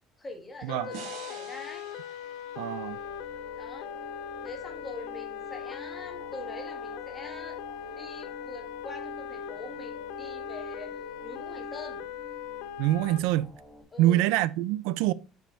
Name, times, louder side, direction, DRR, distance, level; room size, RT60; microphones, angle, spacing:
voice 1, 0.2-1.8 3.5-3.9 4.4-7.6 7.9-10.9 11.2-12.0 13.9-14.3, left 2 dB, 10° left, 1.3 m, -44 dB
sound 1, 0.7-13.2, left 8 dB, 80° left, 0.5 m, -39 dB
sound 2, 0.9-4.1, right 8 dB, 65° right, 1.1 m, -47 dB
sound 3, 2.2-13.8, equal, 20° right, 1.3 m, -49 dB
voice 2, 2.6-3.0 12.8-13.5 14.0-15.1, right 14 dB, 80° right, 0.3 m, -25 dB
5.5 x 5.1 x 4.2 m
cardioid pair, 175°, 0 cm